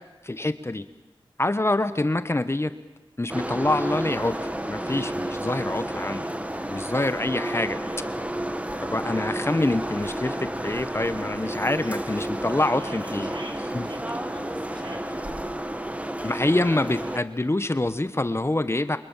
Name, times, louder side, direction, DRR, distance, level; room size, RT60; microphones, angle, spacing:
voice 1, 0.2-0.8 1.4-2.7 3.2-4.3 4.7-6.3 6.7-7.8 8.8-13.3 13.7-13.9 16.2-19.0, left 2 dB, 30° left, 11 dB, 1.1 m, -26 dB
sound 1, 3.3-17.2, right 1 dB, 15° right, 1.7 m, -31 dB
voice 2, 12.3-15.3, right 1 dB, 60° right, 2 dB, 4.4 m, -44 dB
28.0 x 24.0 x 7.3 m, 1.1 s
wide cardioid pair, 60°, 9 cm